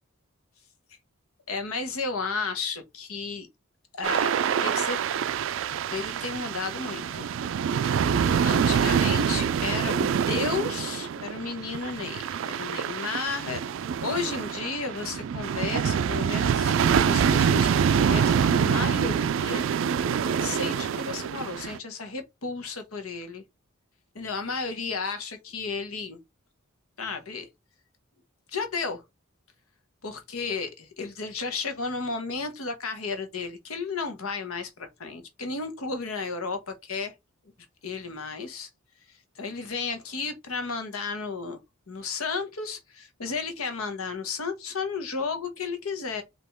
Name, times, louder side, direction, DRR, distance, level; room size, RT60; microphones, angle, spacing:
voice 1, 1.5-3.5 3.9-4.3 4.6-5.0 5.9-7.3 7.8-8.1 8.4-13.6 14.0-19.6 20.4-23.4 24.1-26.2 27.0-27.5 28.5-29.0 30.0-37.1 37.8-38.7 39.4-41.6 41.9-46.2, left 4 dB, 90° left, 1.2 m, -33 dB
sound 1, 4.0-21.8, right 7 dB, 65° right, 0.3 m, -25 dB
5.0 x 2.9 x 3.6 m
head